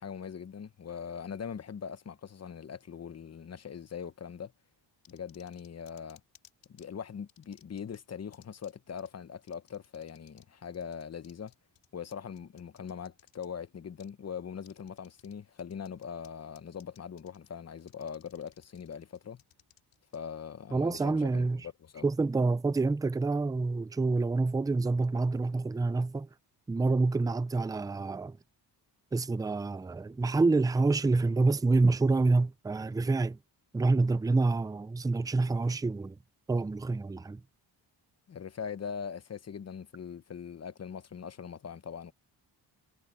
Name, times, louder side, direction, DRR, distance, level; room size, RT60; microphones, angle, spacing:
voice 1, 0.0-4.5 5.1-6.2 6.7-11.5 11.9-19.4 20.1-22.1 38.3-42.1, left 7 dB, 35° left, 0.9 m, -41 dB
sound 1, 5.0-6.9 7.3-8.0 8.3-8.7 9.0-9.1 9.5-10.5 10.7-13.5 14.0-14.1 14.6-15.3 15.6-16.3 16.6-17.5 17.8-20.2, left 11 dB, 85° left, 3.2 m, -60 dB
voice 2, 20.7-21.7 22.0-26.3 26.7-28.4 29.1-33.4 33.7-36.2 36.5-37.4, right 3 dB, 10° right, 0.4 m, -27 dB
cardioid pair, 120°, 43 cm